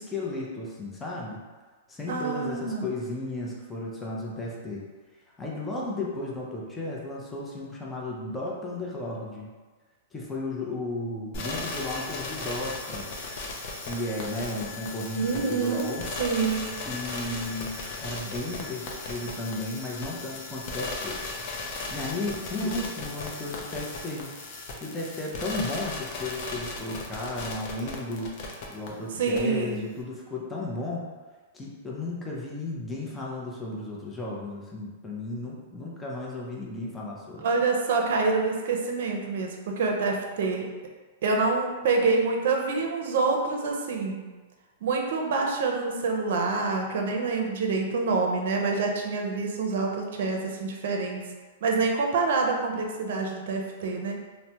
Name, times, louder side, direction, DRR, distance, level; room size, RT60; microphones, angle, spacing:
voice 1, 0.0-1.4 1.9-4.9 5.4-9.5 10.1-13.1 13.8-16.1 16.9-21.2 21.9-24.3 24.8-28.3 28.7-31.1 31.5-37.5, left 2 dB, 10° left, -4 dB, 0.5 m, -34 dB
voice 2, 2.1-2.9 15.2-15.9 16.2-16.7 29.1-29.8 37.4-40.7 41.2-44.3 44.8-51.2 51.6-54.2, right 4 dB, 65° right, 1 dB, 0.5 m, -26 dB
sound 1, 11.3-28.9 29.3-29.4, left 3 dB, 50° left, 0.6 m, -36 dB
3.2 x 2.0 x 2.8 m, 1.3 s
hypercardioid pair, 135°, 0 cm